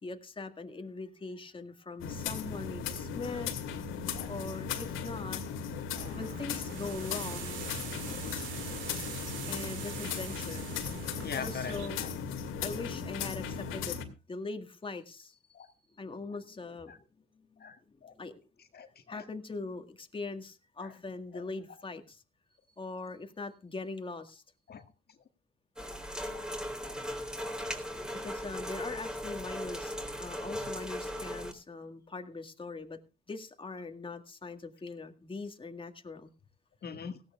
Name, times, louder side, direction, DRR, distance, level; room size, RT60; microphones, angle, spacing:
voice 1, 0.0-3.5 4.3-5.4 6.1-7.6 9.5-10.7 11.4-12.0 12.6-14.0 14.3-15.7 16.0-16.9 17.5-17.7 18.2-18.5 19.1-22.2 22.8-24.4 28.2-33.0 33.3-36.3, left 3 dB, 25° left, 6 dB, 1.9 m, -41 dB
sound 1, 2.0-14.0, left 6 dB, 90° left, 2.4 m, -37 dB
sound 2, 6.0-11.9, right 7 dB, 80° right, 3.9 m, -43 dB
voice 2, 11.2-11.7 12.0-12.1 15.5-15.7 16.9-17.0 17.6-18.1 18.7-19.2 20.8-20.9 21.3-21.4 24.7-24.8 25.9-26.0 26.3-26.5 26.8-26.9 36.8-37.2, left 6 dB, 55° left, 7 dB, 1.8 m, -42 dB
sound 3, 25.8-31.5, equal, 5° right, 3.6 m, -38 dB
18.0 x 16.0 x 2.4 m, 0.31 s
cardioid pair, 90°, 20 cm